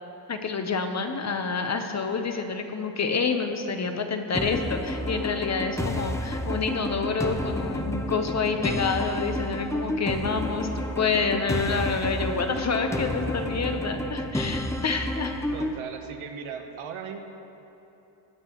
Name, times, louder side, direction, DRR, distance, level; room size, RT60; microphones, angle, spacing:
voice 1, 0.3-15.4, left 4 dB, 35° left, 6 dB, 0.9 m, -28 dB
sound 1, 4.3-15.8, left 1 dB, 5° left, 0.6 m, -30 dB
voice 2, 15.5-17.2, right 7 dB, 85° right, 5 dB, 1.1 m, -37 dB
19.5 x 8.3 x 3.0 m, 3.0 s
cardioid pair, 105°, 48 cm